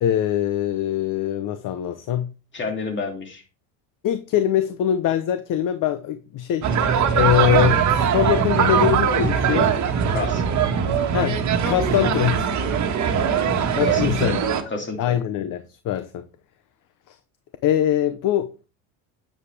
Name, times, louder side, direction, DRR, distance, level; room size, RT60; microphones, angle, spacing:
voice 1, 0.0-2.3 4.0-6.7 7.1-9.7 11.1-12.5 13.7-14.4 15.0-16.3 17.1-17.2 17.6-18.5, left 11 dB, 50° left, 0.9 m, -23 dB
voice 2, 2.5-3.4 10.1-10.4 13.8-14.3 14.7-15.1, left 3 dB, 25° left, 2.9 m, -29 dB
sound 1, 6.6-14.6, right 7 dB, 40° right, 1.8 m, -21 dB
9.8 x 7.7 x 3.4 m
cardioid pair, 125°, 42 cm